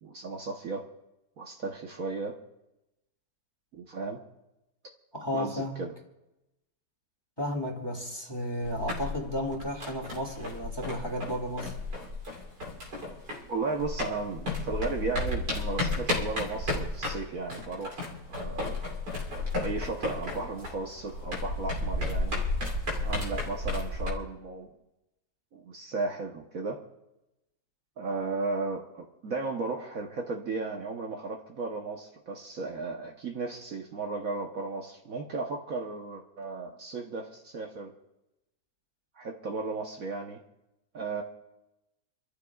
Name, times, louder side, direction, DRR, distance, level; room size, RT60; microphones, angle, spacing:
voice 1, 0.0-0.9 1.4-2.4 3.7-4.2 5.3-5.9 13.5-18.8 19.6-22.4 23.0-24.7 25.5-26.8 28.0-37.9 39.2-40.4 40.9-41.2, right 3 dB, 55° right, 1 dB, 1.4 m, -35 dB
voice 2, 5.1-5.9 7.4-11.7, left 1 dB, 15° left, -1 dB, 2.1 m, -33 dB
sound 1, 8.6-13.5 13.8-24.1, left 2 dB, 85° right, 3.7 m, -33 dB
28.0 x 14.0 x 2.4 m, 0.94 s
omnidirectional pair, 1.8 m